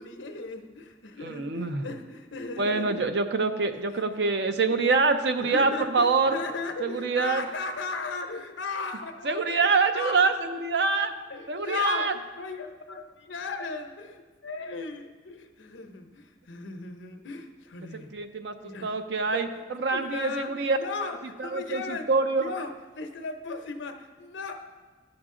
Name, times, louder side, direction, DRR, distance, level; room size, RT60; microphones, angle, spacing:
voice 1, 0.0-3.0 3.7-4.0 4.7-4.8 5.4-9.6 9.9-10.3 11.3-18.1 18.6-18.9 19.3-19.5 19.8-22.1 22.4-24.5, left 4 dB, 80° left, 6 dB, 0.8 m, -36 dB
voice 2, 1.2-1.9 2.6-6.4 6.8-7.4 9.2-10.3 10.6-11.1 11.5-12.1 17.9-18.6 18.8-20.8 21.4-22.5, right 4 dB, 65° right, 8 dB, 0.5 m, -25 dB
11.5 x 6.2 x 3.7 m, 1.3 s
head